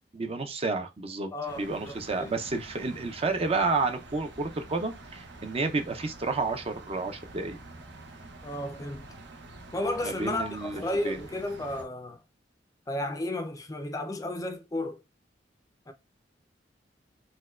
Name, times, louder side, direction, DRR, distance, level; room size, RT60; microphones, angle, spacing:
voice 1, 0.1-1.3 1.6-7.6 10.0-11.2, right 3 dB, 35° right, 0.5 m, -30 dB
voice 2, 1.3-2.4 8.4-9.1 9.7-12.2 12.9-15.0 15.9-16.0, left 1 dB, 20° left, 0.4 m, -33 dB
sound 1, 1.5-11.8, right 2 dB, 70° right, 0.8 m, -47 dB
4.3 x 2.2 x 2.3 m
head